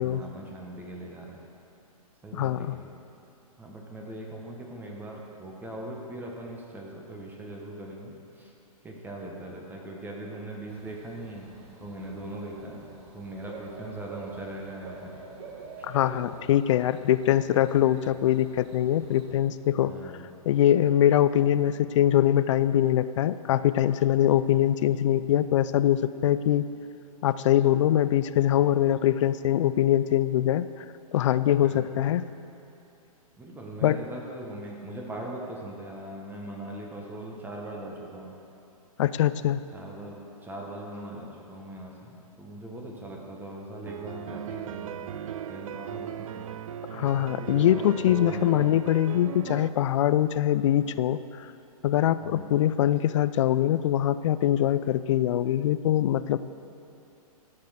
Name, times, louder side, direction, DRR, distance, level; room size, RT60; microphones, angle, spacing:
voice 1, 0.0-1.5 2.2-2.9 3.6-8.5 8.8-12.9 13.1-15.2 15.8-15.9 19.8-20.3 31.6-31.9 33.4-38.4 39.7-45.2 45.5-46.6 47.1-48.7 52.2-52.6, right 1 dB, 10° right, -1 dB, 1.2 m, -40 dB
voice 2, 2.3-2.8 15.8-19.9 20.5-26.6 27.2-30.7 31.1-32.2 33.8-34.0 39.0-39.6 46.9-51.5 51.8-56.4, left 11 dB, 55° left, 14 dB, 0.4 m, -23 dB
Bird / Cricket, 10.7-19.3, right 4 dB, 45° right, 1.5 m, -47 dB
sound 1, 43.9-49.7, right 9 dB, 65° right, 0.5 m, -37 dB
13.0 x 5.5 x 6.5 m, 2.7 s
hypercardioid pair, 130°, 19 cm